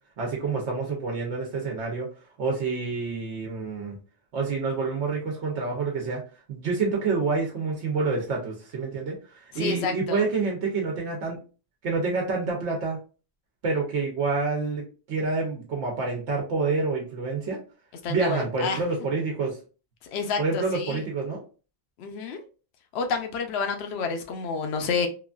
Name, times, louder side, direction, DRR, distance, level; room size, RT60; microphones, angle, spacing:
voice 1, 0.2-2.1 2.4-4.0 4.3-6.2 6.5-11.4 11.8-13.0 13.6-17.6 18.1-19.6 20.4-21.4, right 4 dB, 85° right, 1.0 m, -28 dB
voice 2, 9.5-10.2 18.0-18.8 20.1-21.0 22.0-22.4 22.9-25.1, left 5 dB, 75° left, 0.8 m, -29 dB
3.0 x 2.5 x 2.3 m
omnidirectional pair, 1.1 m